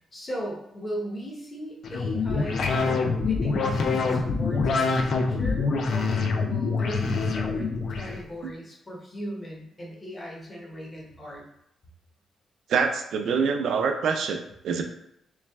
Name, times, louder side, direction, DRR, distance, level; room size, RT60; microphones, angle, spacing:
voice 1, 0.0-7.7 7.9-11.4, equal, 20° left, -2 dB, 0.8 m, -38 dB
sound 1, 1.8-8.2, left 4 dB, 45° left, 0.4 m, -25 dB
voice 2, 12.7-14.4 14.6-14.8, right 5 dB, 60° right, 5 dB, 0.4 m, -25 dB
3.3 x 3.1 x 3.4 m, 0.79 s
cardioid pair, 175°, 0 cm